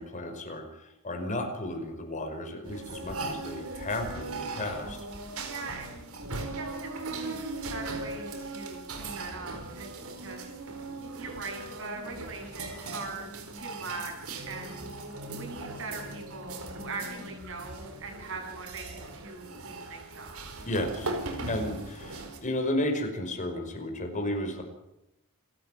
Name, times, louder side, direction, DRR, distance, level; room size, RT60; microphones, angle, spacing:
voice 1, 0.0-5.0 20.6-21.1 21.5-24.6, left 1 dB, 35° left, 4 dB, 5.3 m, -33 dB
sound 1, 2.6-22.4, right 2 dB, 80° right, 4.7 m, -39 dB
voice 2, 5.4-5.9 6.4-7.4 7.7-14.9 15.3-20.4, right 3 dB, 60° right, 3 dB, 7.8 m, -41 dB
29.0 x 13.0 x 9.2 m, 0.88 s
head